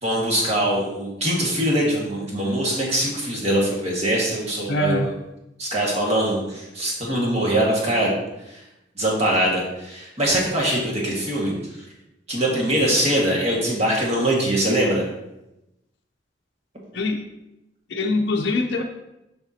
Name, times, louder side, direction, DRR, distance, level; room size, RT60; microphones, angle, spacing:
voice 1, 0.0-5.1 5.6-8.2 9.0-11.6 12.3-15.0, right 1 dB, 35° right, -3 dB, 1.6 m, -22 dB
voice 2, 4.7-5.1 10.3-10.4 16.9-17.2 17.9-18.8, left 2 dB, 60° left, 1 dB, 0.5 m, -23 dB
6.9 x 5.7 x 2.8 m, 0.92 s
head